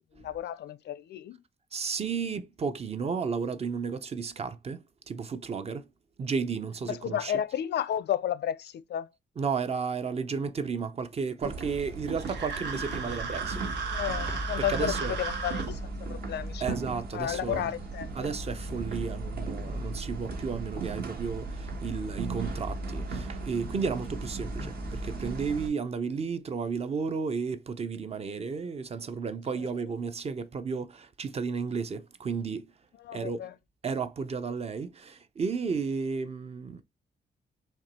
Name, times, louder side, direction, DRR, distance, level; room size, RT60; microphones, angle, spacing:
voice 1, 0.1-1.4 6.9-9.1 12.7-13.0 13.9-15.8 16.1-16.8 17.1-18.3 29.6-29.7 33.0-33.5, left 10 dB, 75° left, 0.4 m, -32 dB
voice 2, 1.7-4.8 5.1-5.9 6.2-7.3 9.4-13.6 14.6-15.2 16.6-17.7 18.2-32.7 33.1-33.4 33.8-36.8, right 5 dB, 35° right, 0.5 m, -33 dB
sound 1, 11.4-25.7, right 2 dB, 60° right, 1.3 m, -36 dB
sound 2, 12.2-15.7, right 5 dB, 85° right, 1.1 m, -35 dB
4.4 x 2.9 x 4.1 m
wide cardioid pair, 145°, 18 cm